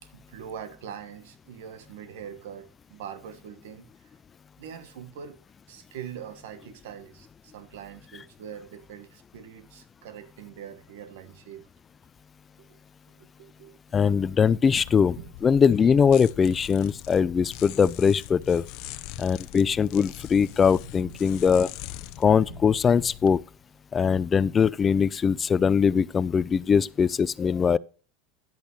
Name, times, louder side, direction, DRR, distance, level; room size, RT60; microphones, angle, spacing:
voice 1, 0.0-4.1 4.6-5.4 5.7-11.7 12.7-12.8 13.1-13.8 15.2-15.3 18.6-19.3 20.8-21.2 22.1-22.2 22.5-22.6, right 8 dB, 80° right, 1.3 m, -43 dB
voice 2, 13.9-15.2 15.4-18.6 19.2-21.7 22.2-23.4 23.9-27.8, left 6 dB, 25° left, 0.3 m, -21 dB
sound 1, 14.8-23.3, left 15 dB, 60° left, 0.6 m, -42 dB
10.5 x 8.2 x 3.1 m
supercardioid pair, 110°, 0 cm